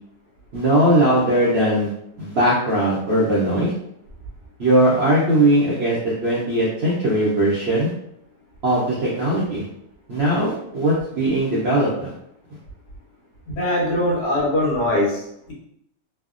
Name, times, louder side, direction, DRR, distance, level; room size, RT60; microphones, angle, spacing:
voice 1, 0.5-1.9 2.2-3.7 4.6-7.9 8.6-9.7 10.1-12.1, right 1 dB, 65° right, -7 dB, 0.6 m, -19 dB
voice 2, 13.5-15.5, left 1 dB, 75° left, -3 dB, 1.4 m, -22 dB
3.2 x 2.0 x 2.4 m, 0.76 s
omnidirectional pair, 1.8 m